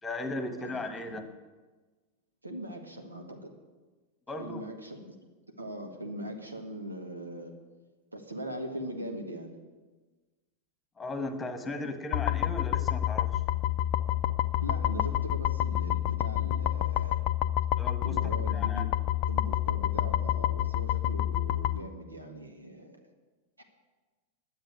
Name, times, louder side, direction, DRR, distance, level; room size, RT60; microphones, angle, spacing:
voice 1, 0.0-1.3 4.3-4.6 11.0-13.4 17.8-18.9, left 2 dB, 15° left, 7 dB, 1.4 m, -37 dB
voice 2, 2.4-3.5 4.4-5.1 5.6-7.5 8.1-9.5 14.6-17.2 18.0-18.9 19.3-23.0 23.6-23.7, right 1 dB, 80° right, 3 dB, 1.7 m, -40 dB
sound 1, 12.1-21.8, left 13 dB, 45° left, 0.4 m, -28 dB
10.5 x 8.0 x 9.7 m, 1.3 s
figure-of-eight pair, 90°, 0 cm